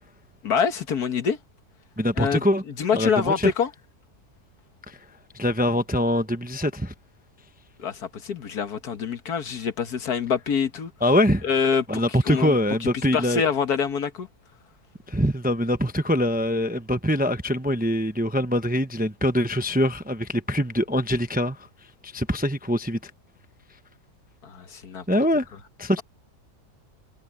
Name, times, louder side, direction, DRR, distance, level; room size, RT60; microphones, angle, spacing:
voice 1, 0.4-1.4 2.2-3.7 7.8-10.9 11.4-14.3 24.4-25.0, left 6 dB, 80° left, 2.0 m, -26 dB
voice 2, 2.0-2.6 2.9-3.5 4.9-5.0 5.3-6.9 11.0-11.4 11.9-13.4 15.1-21.6 22.0-23.0 25.1-25.5 25.8-26.0, equal, 10° right, 0.6 m, -23 dB
omnidirectional pair, 1.6 m